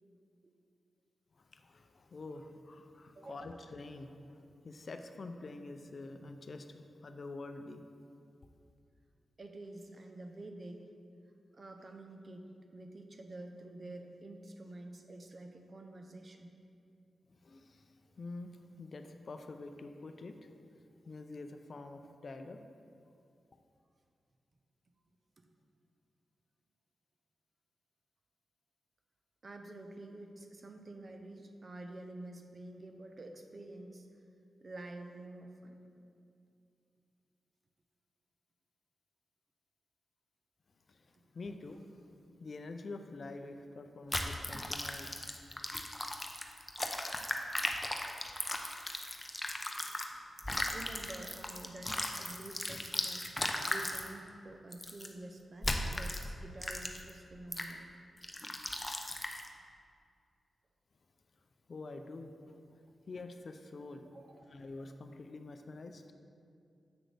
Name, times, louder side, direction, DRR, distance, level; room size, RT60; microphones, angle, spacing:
voice 1, 1.4-7.8 17.3-20.5 21.1-22.6 40.9-42.1 42.4-45.4 49.9-50.0 61.7-64.1 64.5-66.0, left 3 dB, 60° left, 7 dB, 0.5 m, -47 dB
voice 2, 3.1-3.6 9.4-10.9 11.5-16.6 25.4-25.5 29.4-34.1 34.6-35.8 41.1-41.3 50.7-53.3 53.6-57.9 64.1-64.6, right 2 dB, 50° right, 5 dB, 0.7 m, -49 dB
sound 1, 44.1-50.1 50.4-54.1 54.7-55.1 55.6-56.2 56.6-57.1 57.5-57.7 58.2-59.5, left 1 dB, 15° left, 0.7 m, -37 dB
7.8 x 6.1 x 3.4 m, 2.4 s
cardioid pair, 45°, 0 cm